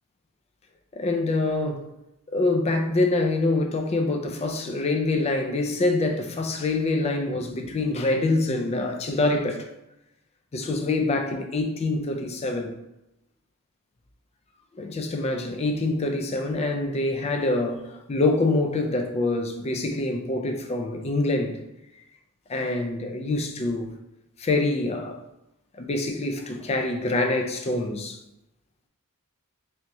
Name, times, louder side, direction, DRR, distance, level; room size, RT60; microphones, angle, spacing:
voice 1, 0.9-1.9 2.3-9.7 10.5-12.8 14.7-21.6 22.5-23.9 24.4-25.2 25.8-28.2, left 2 dB, 30° left, 0.4 m, -25 dB
3.4 x 2.7 x 2.9 m
head